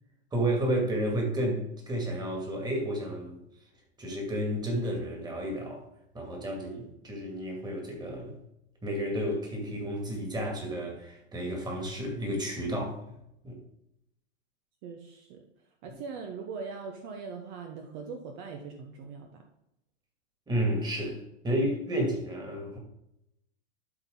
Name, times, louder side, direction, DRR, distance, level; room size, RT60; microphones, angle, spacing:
voice 1, 0.3-3.4 4.0-5.9 6.1-8.3 8.8-13.0 13.4-13.6 20.5-22.8, right 1 dB, 10° right, 0 dB, 2.2 m, -31 dB
voice 2, 14.8-15.4 15.8-19.4, right 5 dB, 50° right, 3 dB, 1.1 m, -41 dB
12.5 x 4.2 x 3.8 m, 0.81 s
supercardioid pair, 140°, 33 cm